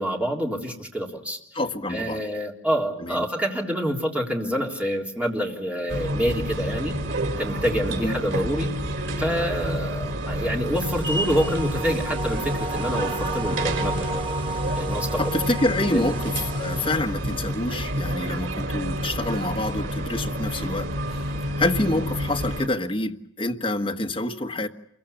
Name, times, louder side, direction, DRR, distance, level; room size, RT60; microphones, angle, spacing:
voice 1, 0.0-1.4 1.9-6.9 7.4-8.7 9.2-14.2 14.8-15.3 15.9-16.2, equal, 5° right, -1 dB, 3.6 m, -27 dB
voice 2, 1.5-2.2 3.0-3.3 8.0-8.1 15.2-21.2 21.6-24.7, left 2 dB, 30° left, 3 dB, 1.4 m, -27 dB
sound 1, 5.9-22.7, equal, 90° right, 4.0 m, -29 dB
sound 2, 10.7-17.0, right 2 dB, 25° right, 1.2 m, -33 dB
28.0 x 23.0 x 7.0 m, 0.71 s
head